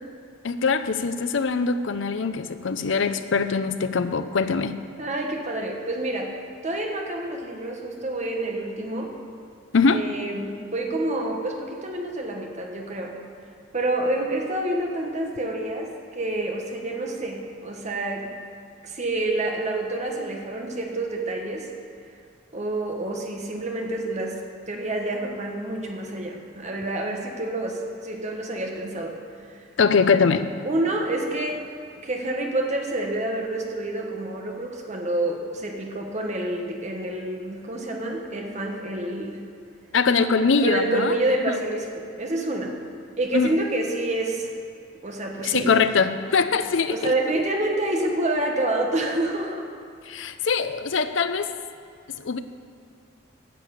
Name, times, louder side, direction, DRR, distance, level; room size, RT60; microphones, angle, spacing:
voice 1, 0.4-4.8 9.7-10.0 29.8-30.5 39.9-41.2 41.5-41.6 43.3-43.5 45.4-47.1 50.1-51.5 52.1-52.4, left 5 dB, 65° left, 11 dB, 0.5 m, -22 dB
voice 2, 5.0-6.4 6.6-9.1 9.9-13.2 13.7-18.3 18.8-21.7 22.5-29.2 29.5-29.6 30.6-31.6 32.0-39.4 40.6-42.8 43.2-44.5 45.0-45.7 46.9-49.7, right 1 dB, 35° right, 1 dB, 1.3 m, -28 dB
10.0 x 6.6 x 8.3 m, 2.3 s
head